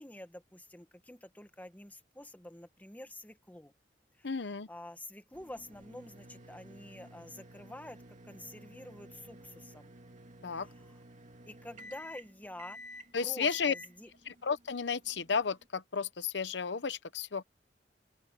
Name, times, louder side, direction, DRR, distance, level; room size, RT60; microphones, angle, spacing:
voice 1, 0.0-3.7 4.2-4.3 4.7-9.9 11.5-12.8 13.2-14.1, left 1 dB, 10° left, 1.2 m, -48 dB
voice 2, 4.2-4.7 10.4-10.7 13.1-13.7 14.3-17.4, left 5 dB, 70° left, 0.9 m, -33 dB
sound 1, 5.3-15.7, equal, 45° right, 2.4 m, -52 dB
open air
head